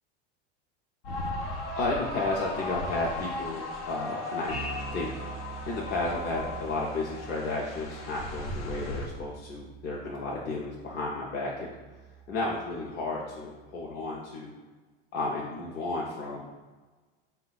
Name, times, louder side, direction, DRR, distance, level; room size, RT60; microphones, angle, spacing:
sound 1, 1.0-9.1, left 2 dB, 85° left, 0.8 m, -36 dB
voice 1, 1.8-4.6 4.9-5.1 5.7-11.7 12.3-14.5 15.1-16.5, left 2 dB, 35° left, -3 dB, 0.5 m, -33 dB
Bass guitar, 4.5-14.2, right 7 dB, 30° right, 0.4 m, -46 dB
4.4 x 2.2 x 4.0 m, 1.3 s
supercardioid pair, 135°, 29 cm